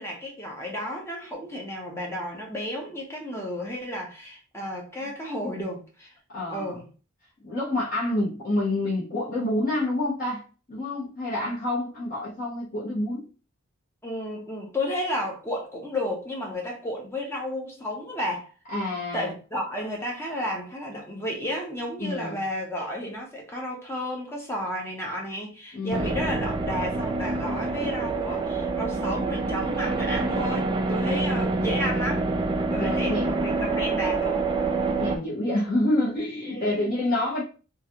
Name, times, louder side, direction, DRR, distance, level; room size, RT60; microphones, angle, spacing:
voice 1, 0.0-6.1 6.5-6.8 14.0-18.5 19.1-32.2 32.7-34.5 36.5-37.2, left 1 dB, 10° left, 0.8 m, -32 dB
voice 2, 6.3-6.8 7.4-13.3 18.7-19.3 22.0-22.4 25.7-26.1 31.2-31.3 32.8-33.5 35.0-37.4, left 1 dB, 40° left, 1.2 m, -28 dB
sound 1, 25.9-35.2, right 3 dB, 20° right, 0.3 m, -26 dB
3.0 x 2.4 x 2.8 m
head